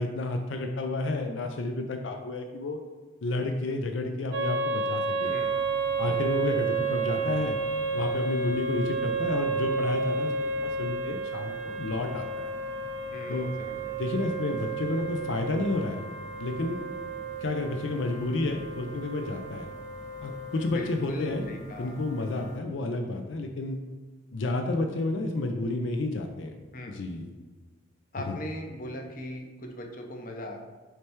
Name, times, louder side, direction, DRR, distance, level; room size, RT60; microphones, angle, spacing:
voice 1, 0.0-2.8 3.2-5.3 6.0-7.6 7.9-10.3 10.6-12.5 13.3-13.5 14.0-16.0 16.4-16.9 17.4-19.7 20.2-21.5 21.8-23.8 24.3-26.5 26.9-27.3 28.3-28.4, left 2 dB, 80° left, 4 dB, 0.5 m, -30 dB
sound 1, 4.3-20.7, right 4 dB, 75° right, 0.7 m, -31 dB
voice 2, 5.2-5.6 13.1-13.9 20.6-22.2 26.7-27.0 28.1-30.6, equal, 45° left, 2 dB, 0.7 m, -39 dB
sound 2, 5.2-22.6, right 1 dB, 40° right, 0.5 m, -48 dB
6.6 x 3.3 x 4.4 m, 1.3 s
head